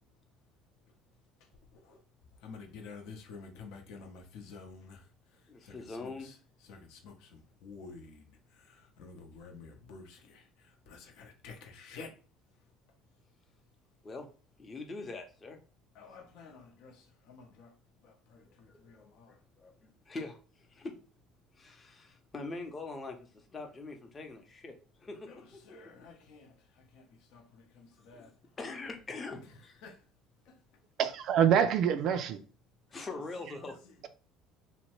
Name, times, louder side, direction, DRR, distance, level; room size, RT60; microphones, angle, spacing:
voice 1, 1.4-2.0 2.4-5.1 5.3-6.4 6.6-12.1 15.9-17.7 18.0-19.3 25.2-28.3 29.8-30.0 30.5-30.6 32.9-33.2 33.6-34.1, left 4 dB, 75° left, 0.8 m, -51 dB
voice 2, 5.5-6.3 14.0-14.3 14.6-15.6 18.4-20.9 21.5-25.8 28.1-29.8 32.9-33.8, left 3 dB, 30° left, 0.7 m, -43 dB
voice 3, 31.0-32.4, right 8 dB, 60° right, 0.3 m, -26 dB
2.8 x 2.1 x 3.0 m
supercardioid pair, 95°, 0 cm